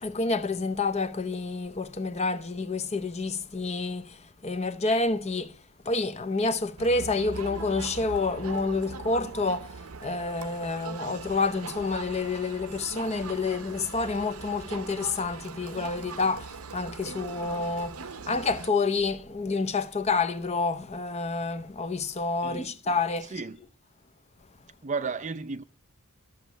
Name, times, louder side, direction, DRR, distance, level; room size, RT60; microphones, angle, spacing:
voice 1, 0.0-4.2 4.4-5.5 5.8-9.7 10.0-18.0 18.3-23.3, left 3 dB, 30° left, 0.7 m, -28 dB
Crowd, 6.8-18.7, right 5 dB, 75° right, 0.8 m, -41 dB
voice 2, 22.4-22.8 23.2-23.6 24.8-25.6, right 4 dB, 35° right, 0.6 m, -33 dB
13.0 x 7.2 x 9.2 m
head